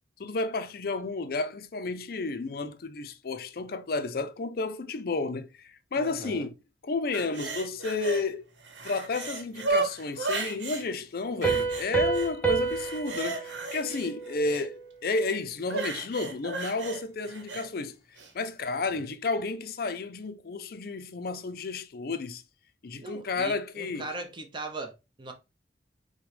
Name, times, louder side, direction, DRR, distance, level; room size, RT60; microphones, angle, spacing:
voice 1, 0.2-6.5 6.8-8.5 8.8-18.0 18.3-22.4 22.8-24.1, left 3 dB, 55° left, 0.5 m, -32 dB
voice 2, 6.0-6.5 19.0-19.1 23.0-25.3, right 2 dB, 25° right, 0.7 m, -39 dB
sound 1, 7.1-8.2 8.6-10.8 11.4-12.3 12.6-14.7 15.7-17.7 18.2-18.3, right 4 dB, 90° right, 0.9 m, -34 dB
Piano, 11.4-14.9, right 5 dB, 10° left, 0.7 m, -30 dB
6.0 x 2.2 x 3.2 m
head